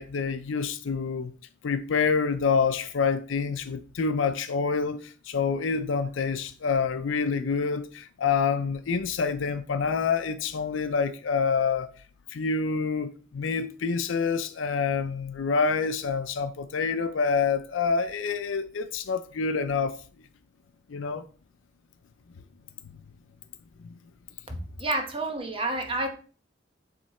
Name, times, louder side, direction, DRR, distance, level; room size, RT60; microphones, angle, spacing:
voice 1, 0.0-1.3 1.6-11.9 12.3-20.0 20.9-21.2, left 5 dB, 90° left, 0.5 m, -27 dB
voice 2, 24.5-26.1, right 2 dB, 30° right, 1.0 m, -29 dB
7.5 x 3.3 x 4.2 m
head